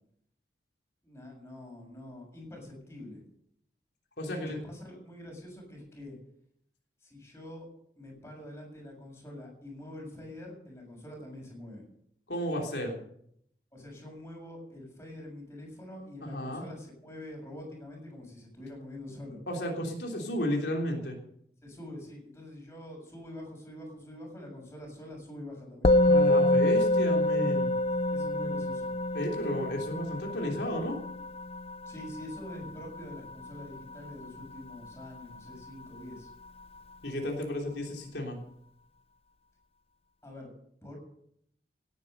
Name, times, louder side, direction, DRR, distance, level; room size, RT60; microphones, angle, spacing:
voice 1, 1.0-3.2 4.2-6.2 7.0-7.7 8.0-11.9 13.7-19.4 21.6-26.0 28.1-28.9 31.9-36.3 40.2-40.5 40.8-41.0, left 1 dB, 15° left, 0 dB, 7.0 m, -45 dB
voice 2, 4.2-4.6 12.3-13.0 16.2-16.7 19.5-21.2 26.0-27.7 29.1-31.0 37.0-38.4, left 1 dB, 80° left, 0 dB, 3.3 m, -33 dB
Musical instrument, 25.8-35.4, left 1 dB, 35° left, 0.5 m, -27 dB
17.5 x 10.5 x 6.7 m, 0.70 s
head